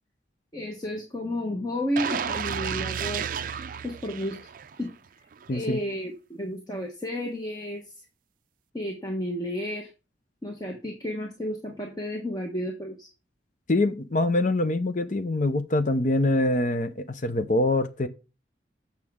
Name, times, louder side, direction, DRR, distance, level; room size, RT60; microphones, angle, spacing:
voice 1, 0.5-3.3 3.8-4.4 4.8-4.9 5.5-7.8 8.7-9.9 10.4-13.1, equal, 20° left, 1.1 m, -32 dB
sound 1, 2.0-4.9 5.3-5.5, right 7 dB, 50° right, 0.4 m, -32 dB
voice 2, 5.5-5.8 13.7-18.1, left 2 dB, 45° left, 0.7 m, -24 dB
8.3 x 5.8 x 3.6 m
head